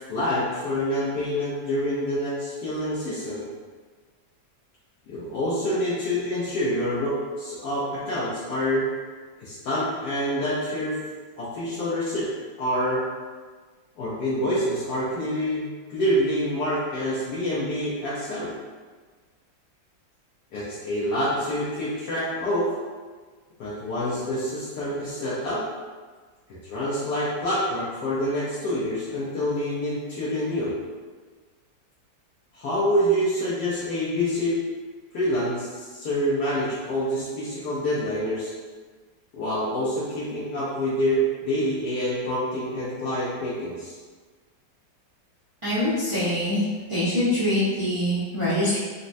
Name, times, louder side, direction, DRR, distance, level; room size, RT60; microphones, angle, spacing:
voice 1, 0.1-3.5 5.1-8.8 9.4-11.0 11.4-12.3 12.6-13.1 14.0-18.5 20.5-22.7 23.6-25.6 26.5-30.7 32.5-34.6 35.1-38.5 39.3-43.9, equal, 75° left, -8 dB, 1.2 m, -27 dB
voice 2, 45.6-46.6 46.9-48.8, left 1 dB, 55° right, -12 dB, 0.3 m, -24 dB
4.0 x 2.1 x 2.6 m, 1.5 s
omnidirectional pair, 1.9 m